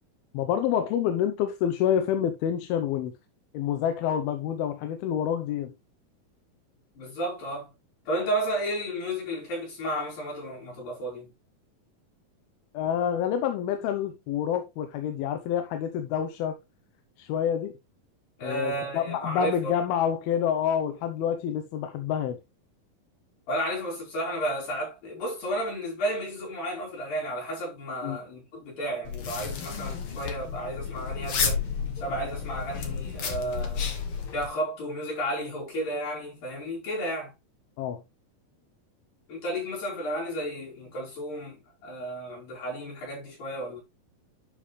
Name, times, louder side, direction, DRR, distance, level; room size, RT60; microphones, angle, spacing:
voice 1, 0.3-3.1 3.5-5.7 12.7-16.6 17.2-17.7 18.4-22.4 28.0-28.2 37.8-38.0, left 9 dB, 90° left, 2.8 m, -27 dB
voice 2, 7.0-7.7 8.1-11.3 18.4-19.7 23.5-31.6 32.0-33.9 34.3-37.3 39.3-43.8, right 1 dB, 65° left, 7.0 m, -32 dB
sound 1, 29.0-34.5, left 6 dB, 50° left, 1.8 m, -32 dB
11.5 x 5.1 x 3.3 m
omnidirectional pair, 4.3 m